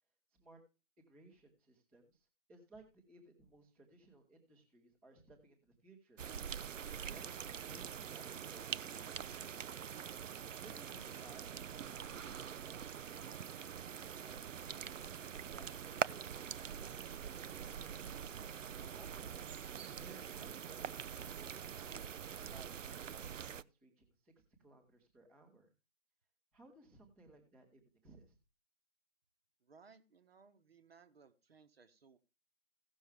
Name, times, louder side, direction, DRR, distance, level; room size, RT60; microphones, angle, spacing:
voice 1, 1.0-6.2 6.9-7.2 7.7-9.9 10.6-14.8 15.3-18.3 19.0-19.5 19.9-22.0 22.5-24.3 24.6-25.7 26.5-28.4, right 2 dB, 5° right, -7 dB, 0.8 m, -61 dB
sound 1, 6.2-23.6, right 8 dB, 65° right, 0.5 m, -44 dB
voice 2, 29.6-32.2, right 5 dB, 45° right, 9 dB, 1.1 m, -63 dB
16.5 x 6.3 x 3.4 m, 0.30 s
figure-of-eight pair, 150°, 42 cm